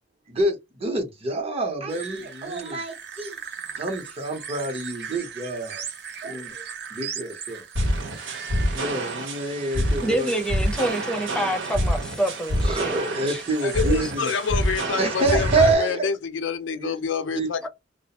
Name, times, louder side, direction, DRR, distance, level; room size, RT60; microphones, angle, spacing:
voice 1, 0.3-3.4 3.8-5.8 6.2-6.6 6.9-7.6 8.7-10.3 12.7-14.3 14.9-16.1 16.8-17.0 17.3-17.5, right 2 dB, 35° right, 0.8 m, -27 dB
sound 1, 1.9-14.7, right 7 dB, 65° right, 0.7 m, -40 dB
sound 2, 7.7-15.7, equal, 80° right, 1.0 m, -27 dB
voice 2, 10.0-13.0 13.3-13.4 14.0-14.1, right 1 dB, 5° left, 0.6 m, -27 dB
voice 3, 13.6-17.7, left 6 dB, 85° left, 0.5 m, -27 dB
2.4 x 2.1 x 2.8 m
head